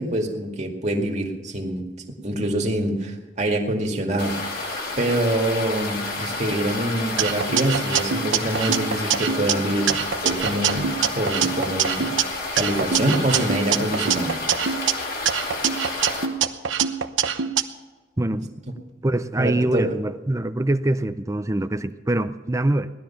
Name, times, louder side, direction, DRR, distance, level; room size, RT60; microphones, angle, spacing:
voice 1, 0.0-1.8 2.2-4.3 5.0-9.9 10.2-12.1 12.5-14.3 18.3-18.4 19.4-19.9, right 1 dB, 40° right, 2.1 m, -25 dB
sound 1, 4.2-16.3, left 3 dB, 50° left, 2.6 m, -30 dB
sound 2, 7.2-9.5 9.9-12.2 12.6-14.9 15.3-17.6, right 8 dB, 90° right, 0.9 m, -24 dB
voice 2, 18.2-18.5 19.0-22.9, right 1 dB, 15° right, 0.5 m, -24 dB
18.5 x 12.5 x 5.8 m
head